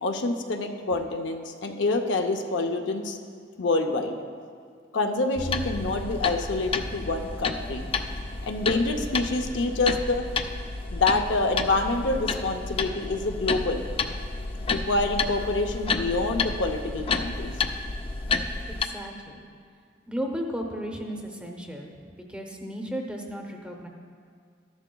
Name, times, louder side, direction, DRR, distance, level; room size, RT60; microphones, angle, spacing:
voice 1, 0.0-3.2 3.6-4.2 4.9-7.9 8.4-10.2 10.9-13.8 14.7-17.5, left 2 dB, 70° left, 4 dB, 0.6 m, -27 dB
sound 1, 5.4-18.9, left 4 dB, 30° left, 0.3 m, -30 dB
voice 2, 18.7-19.4 20.1-21.9 22.3-23.9, equal, 5° right, 1 dB, 0.7 m, -34 dB
13.0 x 10.5 x 2.3 m, 2.2 s
head